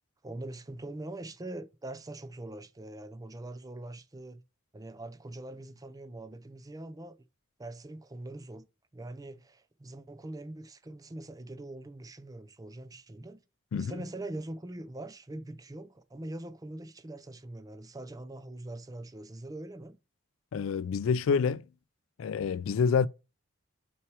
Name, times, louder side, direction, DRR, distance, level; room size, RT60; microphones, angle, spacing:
voice 1, 0.2-4.4 4.7-7.1 7.6-8.7 8.9-13.4 13.7-20.0, right 1 dB, 20° right, 0.5 m, -43 dB
voice 2, 20.5-21.6 22.2-23.1, left 6 dB, 90° left, 0.4 m, -27 dB
5.8 x 4.7 x 4.7 m
head